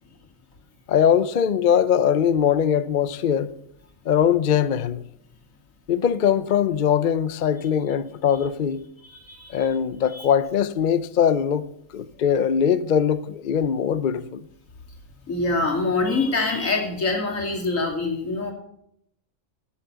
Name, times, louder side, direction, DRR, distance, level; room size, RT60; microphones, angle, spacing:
voice 1, 0.9-3.5 4.1-5.0 5.9-8.8 9.5-14.5, left 8 dB, 50° left, 0.6 m, -21 dB
voice 2, 9.0-9.7 10.1-10.3 15.3-18.5, left 3 dB, 80° left, 3.0 m, -25 dB
15.5 x 7.4 x 6.7 m
omnidirectional pair, 1.4 m